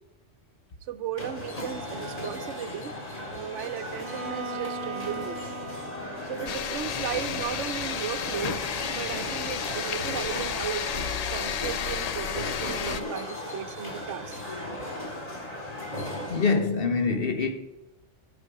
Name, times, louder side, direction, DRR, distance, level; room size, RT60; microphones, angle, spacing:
voice 1, 0.8-2.9 3.3-5.4 6.2-8.6 8.9-10.9 11.3-14.4, right 9 dB, 80° right, 1.0 m, -35 dB
sound 1, 1.2-16.5, left 1 dB, 30° left, 1.9 m, -37 dB
Bowed string instrument, 3.9-8.0, right 2 dB, 45° right, 1.2 m, -39 dB
sound 2, 6.5-13.0, left 7 dB, 70° left, 0.3 m, -32 dB
voice 2, 16.3-17.5, left 4 dB, 50° left, 1.2 m, -24 dB
13.0 x 6.9 x 4.7 m
omnidirectional pair, 1.2 m